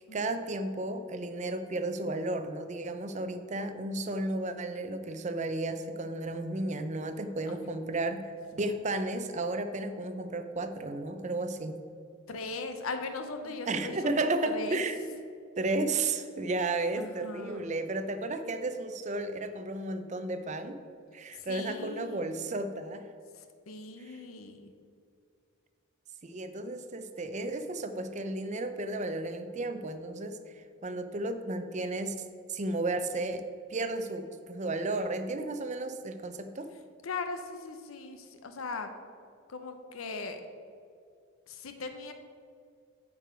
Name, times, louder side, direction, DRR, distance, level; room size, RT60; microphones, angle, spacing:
voice 1, 0.0-11.8 13.7-15.1 15.6-20.8 21.1-23.1 24.0-24.2 26.2-33.4 33.7-36.7, right 2 dB, 35° right, 8 dB, 0.5 m, -33 dB
voice 2, 12.3-14.2 14.5-14.8 17.0-17.7 21.3-22.2 23.3-24.7 37.0-38.9 39.5-40.4 41.5-42.1, left 3 dB, 85° left, 7 dB, 0.7 m, -39 dB
9.2 x 4.8 x 5.0 m, 2.3 s
head